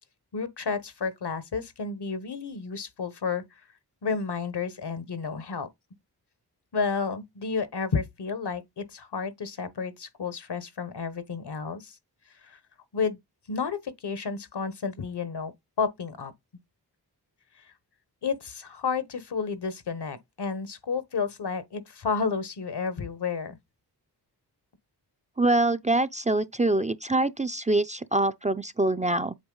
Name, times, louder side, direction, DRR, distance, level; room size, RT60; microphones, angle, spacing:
voice 1, 0.3-3.4 4.0-5.7 6.7-12.0 12.4-12.6 12.9-13.2 13.5-15.5 15.8-16.3 18.2-23.6, left 5 dB, 75° left, 1.1 m, -31 dB
voice 2, 25.4-29.3, right 2 dB, 20° right, 0.4 m, -24 dB
8.0 x 3.1 x 3.9 m
cardioid pair, 40°, 40 cm